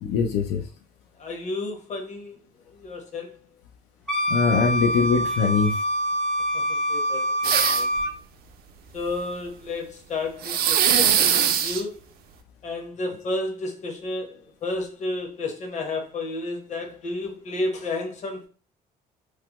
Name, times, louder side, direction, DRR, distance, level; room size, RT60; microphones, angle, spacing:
voice 1, 0.0-0.6 4.3-5.8, left 6 dB, 85° left, 0.5 m, -22 dB
voice 2, 1.2-2.4 2.7-3.4 6.5-7.9 8.9-12.0 12.6-18.5, left 2 dB, 45° left, 0.9 m, -32 dB
Wind instrument woodwind instrument, 4.1-8.1, equal, 5° left, 0.5 m, -25 dB
sound 1, 7.4-8.0 10.4-11.8, right 9 dB, 65° right, 0.4 m, -21 dB
3.2 x 2.0 x 2.9 m
cardioid pair, 110°, 17 cm